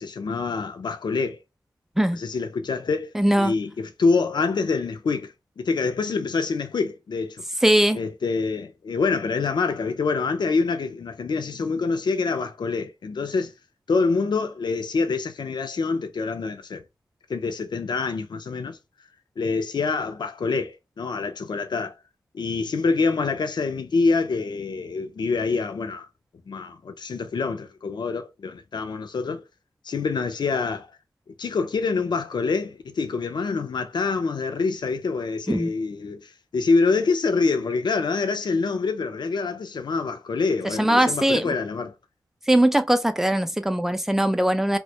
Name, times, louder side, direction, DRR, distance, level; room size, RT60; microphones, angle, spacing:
voice 1, 0.0-1.4 2.1-3.1 3.4-7.4 7.9-13.5 13.9-16.8 17.3-18.8 19.4-21.9 22.3-26.1 26.5-29.4 29.8-30.9 31.4-41.9, left 4 dB, 80° left, 0.4 m, -26 dB
voice 2, 3.1-3.5 7.6-8.0 35.5-35.7 40.8-41.5 42.5-44.8, right 1 dB, 5° right, 0.4 m, -20 dB
2.1 x 2.1 x 2.7 m
cardioid pair, 50°, 7 cm